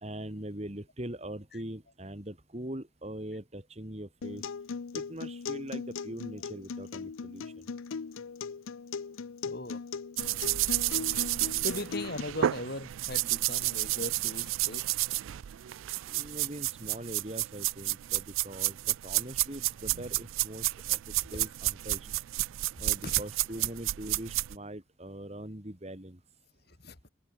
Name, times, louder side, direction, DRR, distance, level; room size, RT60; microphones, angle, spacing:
voice 1, 0.0-4.4 4.9-7.5 16.1-21.0 21.3-22.1 22.8-26.2, right 1 dB, 30° right, 2.2 m, -42 dB
Acoustic guitar, 4.2-12.2, left 5 dB, 90° left, 0.6 m, -39 dB
voice 2, 9.4-9.8 11.6-15.0 21.3-21.4 23.0-23.2 26.7-27.0, left 1 dB, 50° left, 3.6 m, -39 dB
sound 1, 10.2-24.6, right 16 dB, 80° right, 0.4 m, -31 dB
head